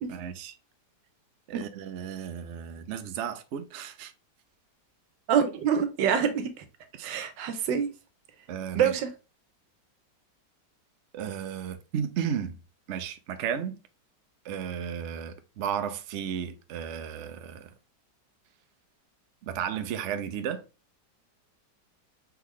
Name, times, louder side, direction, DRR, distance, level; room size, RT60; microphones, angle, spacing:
voice 1, 0.1-0.6 1.5-4.1 6.9-7.2 8.5-8.9 11.1-12.6 12.9-13.8 14.4-17.7 19.4-20.7, right 8 dB, 70° right, 0.6 m, -34 dB
voice 2, 5.3-6.6 7.0-7.9 8.7-9.1, right 8 dB, 90° right, 1.5 m, -26 dB
4.6 x 3.7 x 3.1 m
omnidirectional pair, 1.9 m